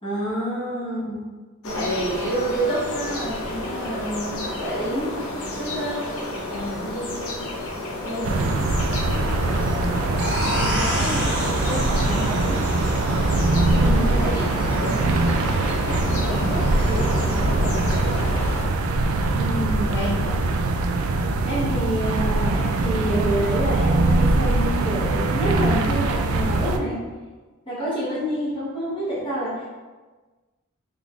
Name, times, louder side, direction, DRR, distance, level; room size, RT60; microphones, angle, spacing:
voice 1, 0.0-1.3 1.6-1.8 6.8-7.0 13.7-14.0 19.3-20.0 21.4-27.0 27.6-29.7, equal, 25° left, -9 dB, 1.3 m, -27 dB
sound 1, 1.6-18.7, left 1 dB, 75° left, 0.6 m, -31 dB
voice 2, 1.7-6.1 6.5-7.3 8.0-12.6 13.8-14.4 14.7-15.1 15.5-18.4 19.8-20.1, equal, 55° left, -8 dB, 1.0 m, -31 dB
sound 2, 8.2-26.8, right 2 dB, 75° right, 0.3 m, -22 dB
sound 3, 10.2-15.6, equal, 55° right, 1.3 m, -31 dB
3.6 x 3.5 x 2.4 m, 1.3 s
head